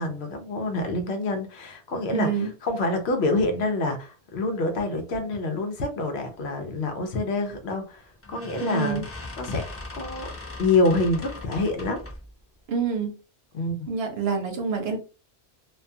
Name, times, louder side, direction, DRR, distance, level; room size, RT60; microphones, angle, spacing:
voice 1, 0.0-8.0 8.3-9.0 9.4-9.7 9.9-10.3 10.6-12.0 13.5-13.9, left 2 dB, 75° left, 0.9 m, -26 dB
voice 2, 2.1-2.5 8.6-9.1 12.7-13.1 13.9-15.0, right 5 dB, 70° right, 0.9 m, -26 dB
sound 1, 7.5-7.7 8.2-12.3, left 2 dB, 25° left, 0.3 m, -40 dB
2.4 x 2.3 x 2.6 m
omnidirectional pair, 1.1 m